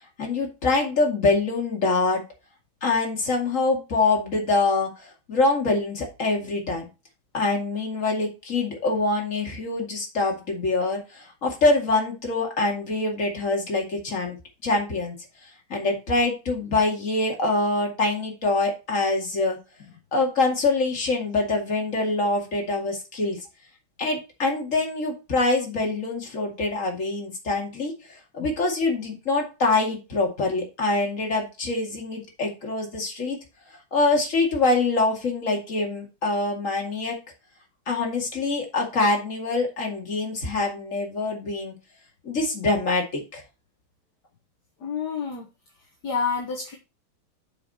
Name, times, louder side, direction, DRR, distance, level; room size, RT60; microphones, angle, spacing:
voice 1, 0.2-2.2 2.8-6.9 7.3-15.2 15.7-19.6 20.1-23.4 24.0-27.9 28.3-33.4 33.9-37.2 37.9-41.7 42.2-43.4, left 3 dB, 35° left, 0 dB, 2.6 m, -24 dB
voice 2, 44.8-45.5 46.0-46.8, left 6 dB, 55° left, 3 dB, 1.8 m, -28 dB
6.9 x 6.7 x 4.2 m, 0.29 s
omnidirectional pair, 2.3 m